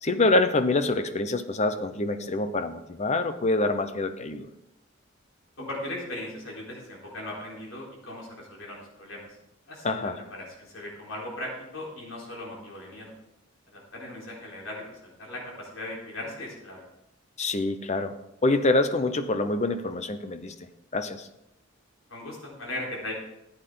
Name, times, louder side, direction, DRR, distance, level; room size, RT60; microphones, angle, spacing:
voice 1, 0.0-4.5 9.8-10.2 17.4-18.2 18.4-20.7 20.9-21.3, left 2 dB, 35° left, 10 dB, 0.8 m, -26 dB
voice 2, 5.6-9.3 9.7-10.1 10.4-13.1 13.7-16.8 22.1-23.1, left 1 dB, 80° left, -3 dB, 4.1 m, -38 dB
14.5 x 9.0 x 3.9 m, 0.88 s
head